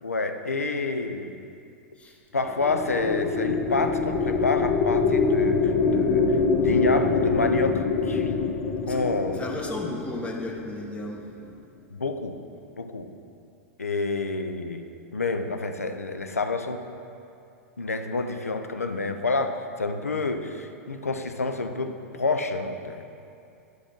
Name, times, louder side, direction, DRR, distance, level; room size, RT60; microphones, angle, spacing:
voice 1, 0.0-1.3 2.3-6.2 6.6-8.4 8.9-9.4 11.9-12.4 12.8-13.1 13.8-14.8 15.1-16.8 17.8-23.0, left 3 dB, 90° left, 6 dB, 0.5 m, -28 dB
sound 1, 2.4-11.0, left 4 dB, 45° left, 0.6 m, -25 dB
voice 2, 9.4-11.2, left 2 dB, 15° left, 0 dB, 1.0 m, -34 dB
10.5 x 4.9 x 3.7 m, 2.6 s
figure-of-eight pair, 95°, 8 cm